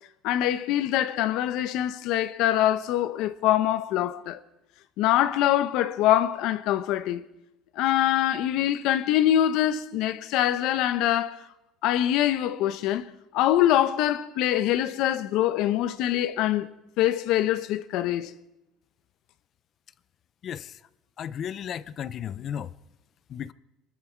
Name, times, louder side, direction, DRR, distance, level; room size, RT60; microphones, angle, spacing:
voice 1, 0.2-4.4 5.0-7.3 7.8-11.4 11.8-13.0 13.3-16.7 17.0-18.3, left 12 dB, 70° left, 0.9 m, -24 dB
voice 2, 21.2-22.7 23.3-23.5, left 9 dB, 45° left, 0.6 m, -34 dB
23.5 x 13.5 x 4.6 m
cardioid pair, 130°, 0 cm